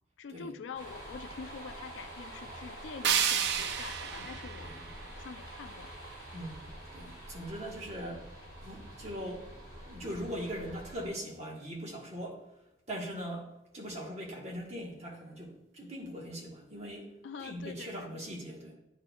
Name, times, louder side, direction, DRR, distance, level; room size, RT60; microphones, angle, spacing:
voice 1, 0.2-4.7 5.1-5.9 17.2-18.1, left 6 dB, 85° left, 11 dB, 0.4 m, -45 dB
sound 1, 0.7-11.1, right 1 dB, 20° right, 1.6 m, -46 dB
sound 2, 3.0-6.0, right 8 dB, 65° right, 0.4 m, -32 dB
voice 2, 6.3-8.3 8.6-12.4 12.9-17.1 17.4-18.7, equal, 35° right, -1 dB, 1.3 m, -41 dB
9.7 x 4.3 x 2.3 m, 0.90 s
head